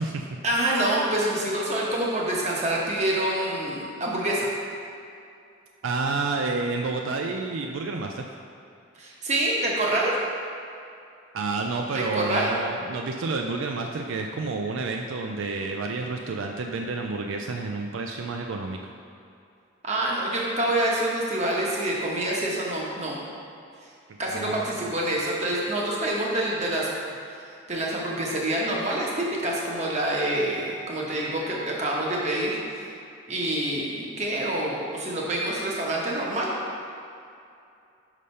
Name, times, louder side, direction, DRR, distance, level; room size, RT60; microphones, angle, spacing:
voice 1, 0.4-4.5 9.0-10.2 11.9-12.5 19.8-23.2 24.2-26.9 27.7-32.6 33.3-36.5, right 1 dB, 35° right, -3 dB, 1.0 m, -26 dB
voice 2, 5.8-8.3 11.3-18.8 24.3-24.6, right 3 dB, 75° right, 3 dB, 0.4 m, -29 dB
5.4 x 5.0 x 5.5 m, 2.5 s
head